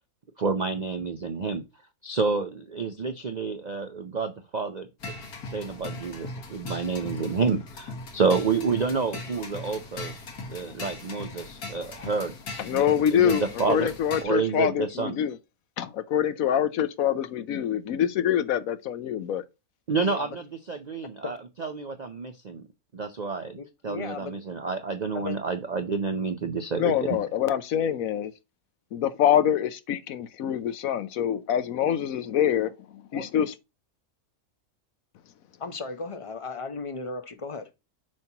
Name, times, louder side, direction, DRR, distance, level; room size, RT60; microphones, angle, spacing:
voice 1, 0.4-1.6 2.0-5.1 5.4-10.1 10.5-12.3 12.7-13.9 14.2-15.2 19.9-22.6 22.9-23.6 23.8-27.2, right 4 dB, 55° right, 0.4 m, -29 dB
sound 1, 5.0-14.2, left 3 dB, 85° left, 2.0 m, -39 dB
voice 2, 12.6-15.4 15.8-19.4 26.8-28.3 28.9-32.7 33.1-33.5, left 9 dB, 70° left, 1.1 m, -25 dB
voice 3, 23.6-24.4 25.1-25.4 33.1-33.2 35.6-37.8, left 4 dB, 30° left, 0.6 m, -36 dB
7.6 x 5.8 x 2.9 m
omnidirectional pair, 1.6 m